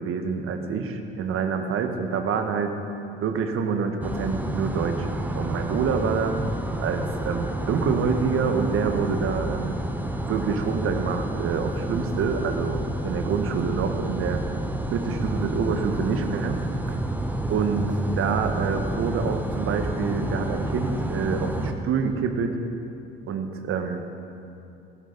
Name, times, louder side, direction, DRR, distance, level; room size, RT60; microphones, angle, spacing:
voice 1, 0.0-2.7 3.2-6.3 6.8-9.8 10.2-14.4 14.9-17.0 17.5-22.6 23.3-24.1, right 5 dB, 45° right, 6 dB, 1.4 m, -27 dB
sound 1, 4.0-21.7, right 1 dB, 5° right, 1.1 m, -29 dB
16.5 x 11.5 x 4.0 m, 2.8 s
figure-of-eight pair, 60°, 30 cm